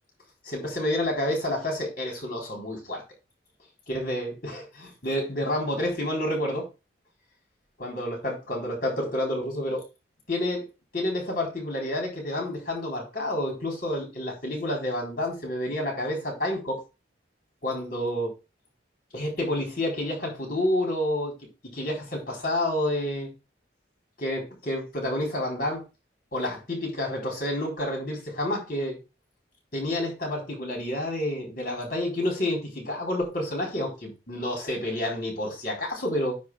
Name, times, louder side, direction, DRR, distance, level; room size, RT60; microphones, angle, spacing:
voice 1, 0.4-3.0 3.9-6.7 7.8-9.8 10.3-10.7 10.9-16.8 17.6-18.3 19.1-21.3 21.7-23.3 24.2-25.8 26.3-29.0 29.7-36.4, left 1 dB, 50° left, 4.1 m, -29 dB
9.4 x 3.2 x 6.2 m
head